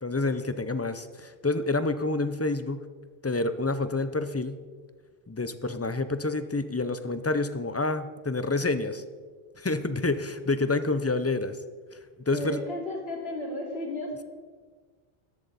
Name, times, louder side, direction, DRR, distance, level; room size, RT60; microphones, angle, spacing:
voice 1, 0.0-2.8 3.2-4.6 5.3-9.0 9.6-11.6 11.9-12.6, left 3 dB, 20° left, 11 dB, 0.4 m, -28 dB
voice 2, 12.3-14.2, left 1 dB, 80° left, -2 dB, 3.1 m, -34 dB
13.5 x 12.0 x 4.1 m, 1.5 s
omnidirectional pair, 1.0 m